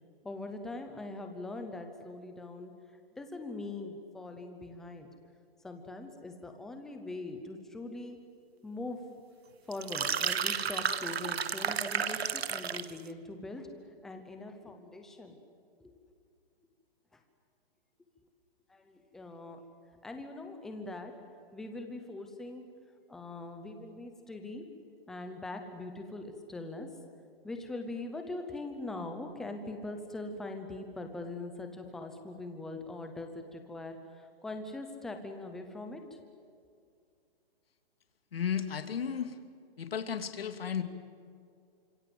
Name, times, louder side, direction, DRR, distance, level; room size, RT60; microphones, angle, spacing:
voice 1, 0.2-2.7 3.2-5.1 5.6-8.2 8.6-9.0 9.7-13.7 14.0-15.4 15.8-15.9 18.7-19.6 20.0-21.1 21.5-22.6 23.1-24.7 25.1-26.9 27.4-36.2, left 2 dB, ahead, 5 dB, 0.7 m, -42 dB
sound 1, 9.7-13.0, right 7 dB, 90° right, 1.5 m, -32 dB
voice 2, 38.3-39.4 39.8-40.8, left 8 dB, 70° left, 8 dB, 2.6 m, -34 dB
28.5 x 26.0 x 7.8 m, 2.3 s
hypercardioid pair, 175°, 30 cm